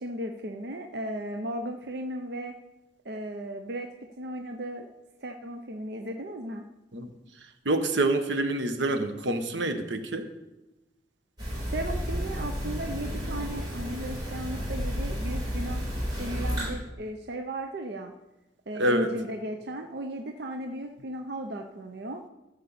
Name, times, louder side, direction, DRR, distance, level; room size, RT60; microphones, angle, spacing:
voice 1, 0.0-2.5 3.0-3.9 4.2-4.9 5.2-6.6 11.7-15.8 16.2-18.1 18.7-22.2, right 1 dB, 65° right, 4 dB, 0.7 m, -36 dB
voice 2, 7.6-10.3 18.8-19.1, right 2 dB, 85° right, 8 dB, 1.1 m, -26 dB
sound 1, 11.4-16.7, equal, 25° right, 4.7 m, -32 dB
14.0 x 5.3 x 7.0 m, 0.99 s
head